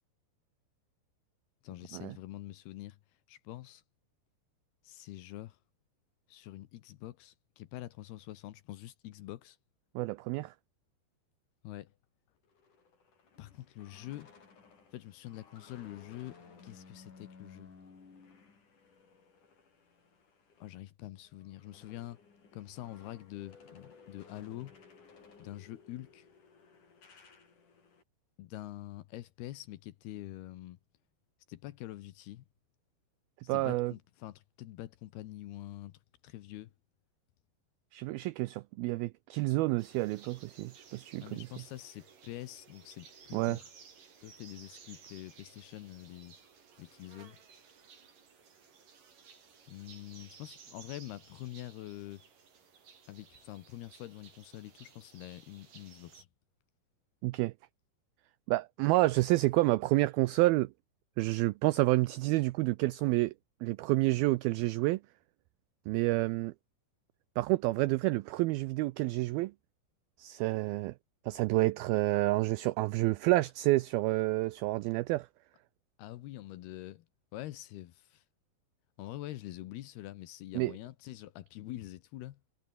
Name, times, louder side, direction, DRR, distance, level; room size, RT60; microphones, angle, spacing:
voice 1, 1.6-3.0 3.3-3.8 4.8-5.6 6.3-9.6 11.6-11.9 13.4-14.3 14.9-17.7 20.6-22.2 22.5-24.8 25.4-26.3 28.4-30.8 31.5-32.5 33.4-36.7 41.2-43.7 44.2-46.4 46.8-47.4 49.7-52.2 53.1-56.3 76.0-77.1 77.3-78.2 79.0-82.4, left 15 dB, 75° left, 2.9 m, -45 dB
voice 2, 10.0-10.5 33.5-33.9 37.9-41.5 43.3-43.6 57.2-57.5 58.5-60.7 61.2-63.3 63.6-65.0 65.9-66.5 67.4-69.5 70.2-70.9 71.3-75.3 80.6-80.7, right 20 dB, 85° right, 2.1 m, -29 dB
sound 1, 12.4-20.8 21.2-28.0, left 5 dB, 45° left, 6.4 m, -58 dB
sound 2, 39.8-56.2, right 6 dB, 50° right, 5.5 m, -57 dB
omnidirectional pair, 4.9 m